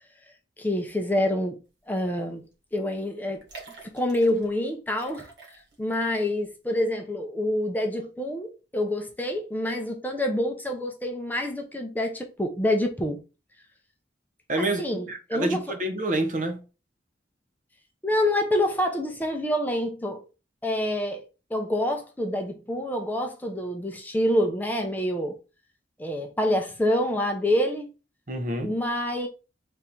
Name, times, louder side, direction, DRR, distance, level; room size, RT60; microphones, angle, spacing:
voice 1, 0.6-1.6 1.9-2.4 2.7-3.4 3.9-5.3 5.8-13.2 14.5-15.6 18.0-20.2 20.6-21.2 21.5-25.4 26.0-27.9 28.6-29.3, left 1 dB, 10° left, 0.5 m, -27 dB
sound 1, 2.0-2.2 2.5-2.6 3.3-4.5 4.9-6.0 6.3-6.4, right 4 dB, 80° right, 1.4 m, -46 dB
voice 2, 14.5-16.6 28.3-28.8, right 1 dB, 45° right, 0.6 m, -28 dB
3.4 x 2.6 x 4.4 m
head